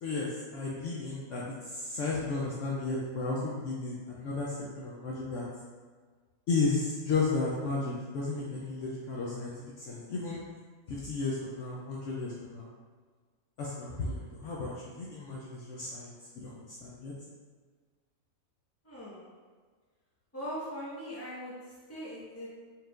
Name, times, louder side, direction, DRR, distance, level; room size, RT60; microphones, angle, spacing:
voice 1, 0.0-5.4 6.5-9.5 9.9-10.4 10.9-12.7 13.6-16.1 16.4-17.1, left 3 dB, 70° left, -5 dB, 0.8 m, -33 dB
voice 2, 18.8-19.3 20.3-21.5 21.9-22.5, equal, 10° left, -8 dB, 0.9 m, -40 dB
4.3 x 3.2 x 2.4 m, 1.5 s
omnidirectional pair, 1.5 m